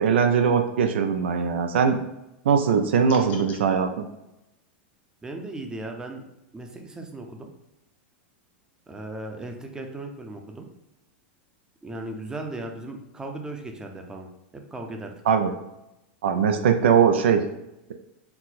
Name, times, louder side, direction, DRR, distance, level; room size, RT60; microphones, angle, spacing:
voice 1, 0.0-2.0 2.5-4.0 15.3-15.5 16.2-17.4, right 6 dB, 85° right, 6 dB, 0.4 m, -21 dB
sound 1, 3.1-3.6, left 5 dB, 70° left, 0.8 m, -42 dB
voice 2, 5.2-6.2 6.5-7.5 8.9-10.7 11.8-14.3 14.5-15.1, right 2 dB, 10° right, 3 dB, 0.6 m, -37 dB
4.4 x 2.0 x 4.0 m, 0.90 s
supercardioid pair, 125°, 6 cm